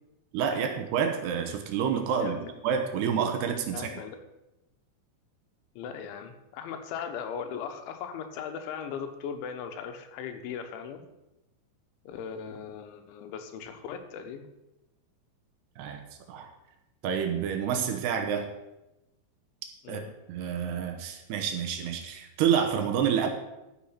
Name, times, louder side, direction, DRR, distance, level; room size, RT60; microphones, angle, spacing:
voice 1, 0.3-3.9 15.8-16.0 16.3-16.5 17.0-18.5 19.9-20.0 20.3-23.3, right 7 dB, 75° right, 5 dB, 2.9 m, -28 dB
voice 2, 3.7-4.2 5.8-11.0 12.0-14.5 19.8-20.1, left 7 dB, 85° left, 7 dB, 3.5 m, -38 dB
13.5 x 6.7 x 5.7 m, 0.94 s
omnidirectional pair, 5.3 m